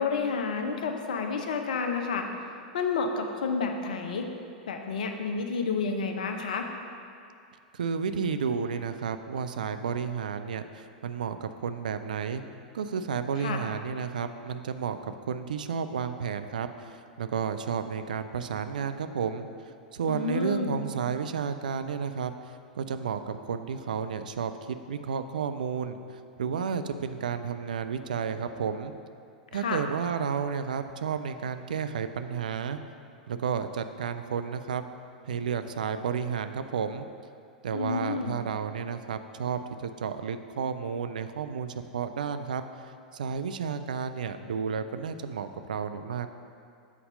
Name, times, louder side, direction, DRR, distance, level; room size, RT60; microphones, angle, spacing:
voice 1, 0.0-2.3 2.7-4.3 4.7-6.7 13.4-13.6 20.1-20.8 29.5-29.8 37.7-38.4, left 5 dB, 60° left, 4 dB, 0.6 m, -30 dB
voice 2, 7.7-12.4 12.7-19.5 19.9-22.3 22.7-28.9 29.5-32.8 33.3-34.8 35.3-37.1 37.6-42.6 43.1-46.3, right 6 dB, 65° right, 9 dB, 0.4 m, -32 dB
7.3 x 4.1 x 5.2 m, 2.4 s
figure-of-eight pair, 95°, 5 cm